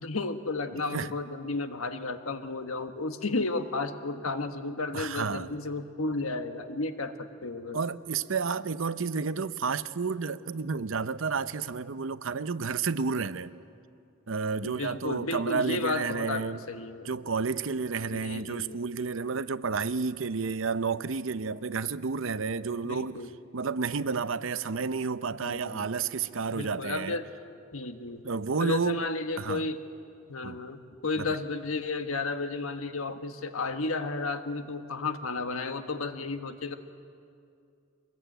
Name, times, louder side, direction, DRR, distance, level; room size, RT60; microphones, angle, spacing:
voice 1, 0.0-7.8 14.6-17.1 18.1-18.8 22.8-23.3 25.4-25.9 26.5-27.3 27.7-28.2 28.6-29.8 30.3-36.8, left 3 dB, 85° left, 1.5 m, -33 dB
voice 2, 4.9-5.5 7.7-13.5 14.3-16.6 17.0-23.2 23.5-27.2 28.2-29.0 29.4-29.7 30.4-30.6 31.2-31.4, right 5 dB, 65° right, 0.7 m, -31 dB
24.0 x 21.5 x 9.1 m
head